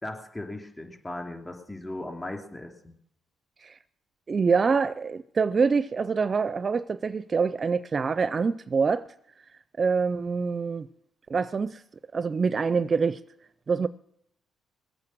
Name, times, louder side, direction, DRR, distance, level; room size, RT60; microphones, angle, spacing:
voice 1, 0.0-2.9, left 1 dB, 15° left, 3.0 m, -37 dB
voice 2, 4.3-9.1 9.8-10.9 11.3-11.8 12.1-13.2 13.7-13.9, right 5 dB, 40° right, 0.5 m, -25 dB
21.0 x 8.8 x 6.2 m
cardioid pair, 90°, 0 cm